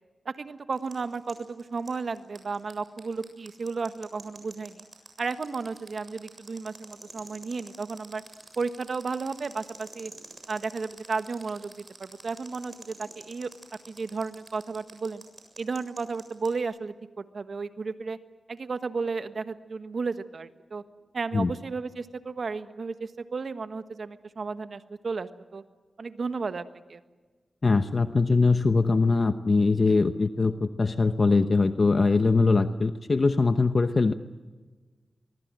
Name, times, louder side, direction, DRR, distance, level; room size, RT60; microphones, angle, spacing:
voice 1, 0.2-4.8 5.2-8.2 8.6-10.1 10.5-13.5 13.9-15.2 15.6-18.2 18.5-20.8 21.1-25.6 26.0-26.6 26.9-27.0, right 4 dB, 65° right, 10 dB, 1.4 m, -33 dB
sound 1, 0.7-16.5, right 3 dB, 45° right, 7.3 m, -47 dB
voice 2, 27.6-34.1, left 3 dB, 50° left, 9 dB, 1.0 m, -22 dB
23.5 x 23.0 x 7.7 m, 1.3 s
cardioid pair, 60°, 0 cm